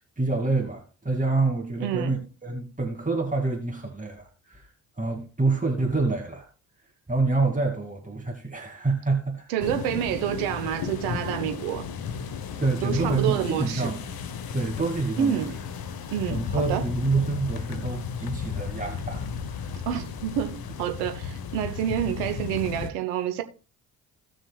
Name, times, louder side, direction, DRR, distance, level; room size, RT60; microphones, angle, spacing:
voice 1, 0.0-4.7 5.0-6.5 7.1-9.5 12.6-14.0 14.5-15.5 16.3-19.7, right 3 dB, 15° right, 2.5 m, -27 dB
voice 2, 1.8-2.1 9.5-11.9 12.8-13.9 15.2-15.5 16.1-16.8 19.9-23.4, right 10 dB, 80° right, 1.1 m, -28 dB
sound 1, 9.6-22.9, left 6 dB, 55° left, 1.2 m, -34 dB
18.0 x 6.3 x 2.4 m
hypercardioid pair, 40°, 44 cm